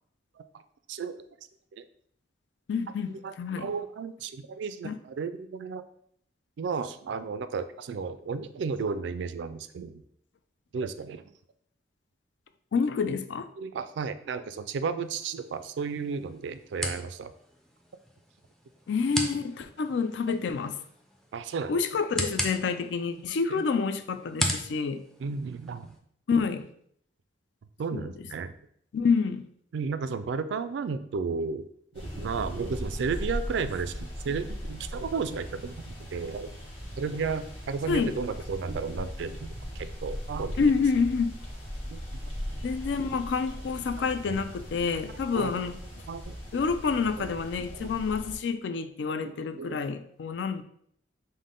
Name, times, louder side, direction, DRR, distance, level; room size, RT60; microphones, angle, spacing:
voice 1, 2.7-3.7 4.8-5.0 12.7-13.5 18.9-20.8 21.7-25.0 26.3-26.7 27.9-28.1 28.9-29.5 37.9-38.1 40.6-41.4 42.6-45.8 46.5-50.6, left 5 dB, 75° left, 0.4 m, -28 dB
voice 2, 3.2-5.8 6.6-10.0 10.7-11.2 13.6-17.3 21.3-21.7 23.5-23.7 25.2-25.9 27.8-28.5 29.7-31.6 31.9-36.5 37.0-40.7 41.9-42.0 43.9-44.0 45.3-45.5 46.1-46.3 47.2-47.3 47.8-47.9 49.1-50.0, right 5 dB, 75° right, 0.3 m, -33 dB
sound 1, 15.0-26.0, equal, ahead, 0.4 m, -38 dB
sound 2, 31.9-48.4, equal, 30° left, 1.5 m, -39 dB
5.3 x 2.1 x 3.7 m
head